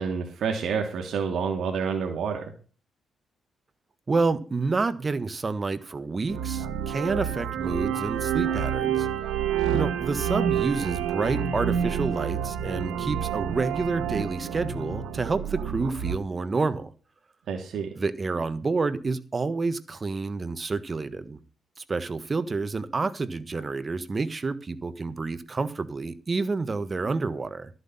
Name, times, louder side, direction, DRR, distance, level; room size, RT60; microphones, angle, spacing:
voice 1, 0.0-2.4 17.5-17.9, right 6 dB, 70° right, 2.8 m, -28 dB
voice 2, 4.1-9.1 9.7-16.9 18.0-21.4 21.8-27.7, right 3 dB, 30° right, 1.4 m, -29 dB
sound 1, 6.3-16.2, right 9 dB, 90° right, 1.8 m, -28 dB
14.0 x 8.1 x 5.7 m
cardioid pair, 100°, 0 cm